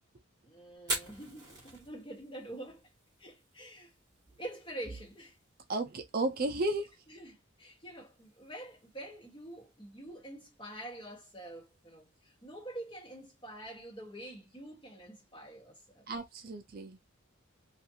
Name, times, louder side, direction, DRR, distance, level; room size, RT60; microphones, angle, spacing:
voice 1, 0.4-2.9 3.2-3.9 4.4-5.4 7.1-16.1, right 1 dB, 25° left, 1.3 m, -46 dB
Fire, 0.8-14.6, right 2 dB, 20° right, 1.3 m, -48 dB
voice 2, 5.7-6.9 16.1-17.0, right 2 dB, 45° right, 0.5 m, -33 dB
2.5 x 2.4 x 2.7 m
head